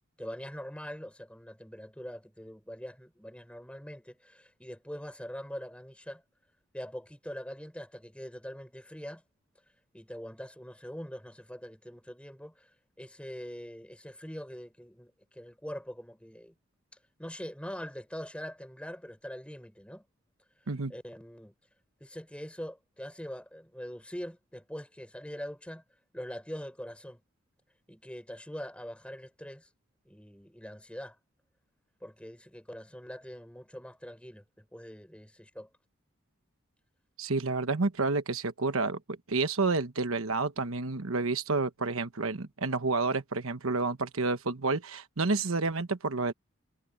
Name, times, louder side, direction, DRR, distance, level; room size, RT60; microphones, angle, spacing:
voice 1, 0.2-6.2 6.7-9.2 9.9-12.7 13.0-16.5 17.2-20.0 20.9-21.5 22.0-25.8 26.1-27.2 27.9-29.7 30.0-31.2 32.0-35.7, equal, 5° left, 4.9 m, -43 dB
voice 2, 37.2-39.0 39.3-46.3, right 3 dB, 75° right, 1.1 m, -29 dB
head